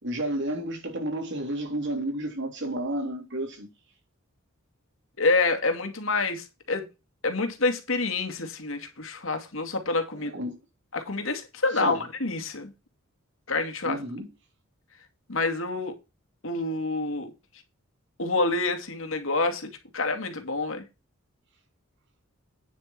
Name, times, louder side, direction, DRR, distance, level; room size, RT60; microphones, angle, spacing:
voice 1, 0.0-3.7 10.2-10.6 11.7-12.0 13.8-14.3, right 1 dB, 60° right, 3.4 m, -31 dB
voice 2, 5.2-6.8 7.2-10.3 10.9-12.7 13.5-14.0 15.3-15.9 16.4-17.3 18.2-20.8, left 3 dB, 70° left, 2.4 m, -27 dB
9.5 x 6.5 x 4.6 m
head